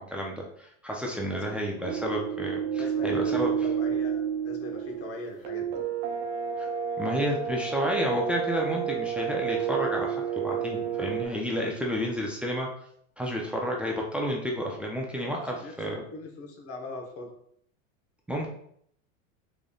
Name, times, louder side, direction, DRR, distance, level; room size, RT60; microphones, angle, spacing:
voice 1, 0.0-3.7 6.6-6.7 7.0-12.7 13.2-16.0 18.3-18.5, equal, 5° right, -1 dB, 0.4 m, -31 dB
voice 2, 1.3-1.6 2.7-5.8 15.2-15.7 16.1-17.3, left 2 dB, 35° left, 2 dB, 1.0 m, -41 dB
sound 1, 1.9-11.3, right 8 dB, 65° right, 0.8 m, -30 dB
3.9 x 3.2 x 2.3 m, 0.66 s
supercardioid pair, 115°, 40 cm